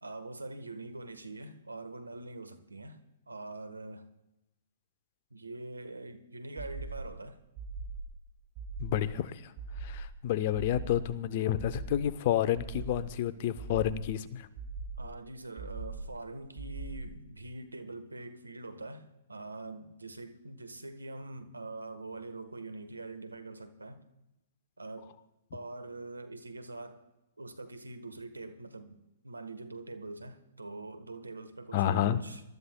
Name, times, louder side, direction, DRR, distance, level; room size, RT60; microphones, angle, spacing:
voice 1, 0.0-3.0 3.3-4.1 5.3-7.4 15.0-24.0 24.8-25.1 25.5-27.1 27.4-32.4, right 2 dB, 90° right, 1.2 m, -44 dB
sound 1, 6.6-7.2 7.5-8.2 8.5-9.2 9.6-10.2 10.5-11.2 11.5-12.2 12.5-13.2 13.6-14.2 14.6-15.2 15.6-16.2 16.6-17.2, right 3 dB, 35° right, 3.0 m, -41 dB
voice 2, 8.8-9.5 9.8-14.5 31.7-32.2, left 11 dB, 45° left, 0.7 m, -30 dB
26.0 x 13.0 x 2.2 m
figure-of-eight pair, 115°, 0 cm